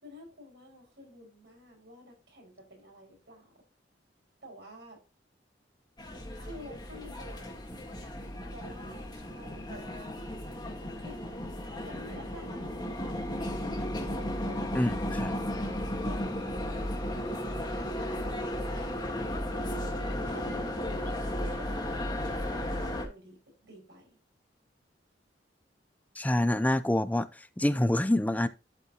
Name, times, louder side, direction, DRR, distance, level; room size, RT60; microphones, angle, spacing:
voice 1, 0.0-3.6 4.4-5.0 6.4-8.0 8.4-10.2 10.8-11.5 11.8-13.5 14.1-14.8 16.0-19.9 20.2-24.2, equal, 75° right, 5.7 m, -51 dB
sound 1, 6.0-23.0, left 1 dB, 25° left, 1.7 m, -34 dB
voice 2, 14.7-15.4 26.2-28.5, left 1 dB, 10° left, 0.5 m, -27 dB
12.0 x 5.4 x 2.9 m
head